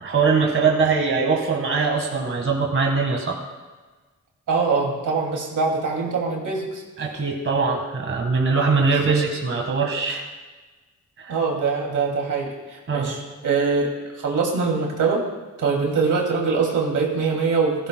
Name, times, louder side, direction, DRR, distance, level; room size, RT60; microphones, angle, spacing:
voice 1, 0.0-3.4 7.0-10.3 11.2-11.4 12.9-13.1, right 4 dB, 45° right, 0 dB, 1.7 m, -22 dB
voice 2, 4.5-6.8 8.9-9.1 11.3-13.9 14.1-15.2 15.6-17.9, right 4 dB, 85° right, 0 dB, 2.6 m, -23 dB
16.0 x 15.5 x 2.3 m, 1.3 s
wide cardioid pair, 100°, 30 cm